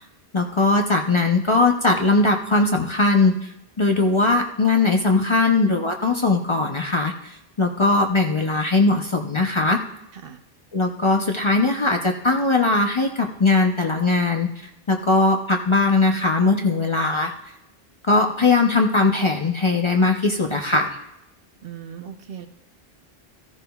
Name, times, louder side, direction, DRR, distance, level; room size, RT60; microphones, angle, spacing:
voice 1, 0.3-3.5 3.8-7.1 7.6-9.8 10.7-14.5 14.9-17.3 18.1-21.0, left 3 dB, 35° left, 2 dB, 0.7 m, -20 dB
voice 2, 21.6-22.5, right 8 dB, 65° right, 7 dB, 1.0 m, -38 dB
14.5 x 14.0 x 2.3 m, 0.81 s
omnidirectional pair, 1.1 m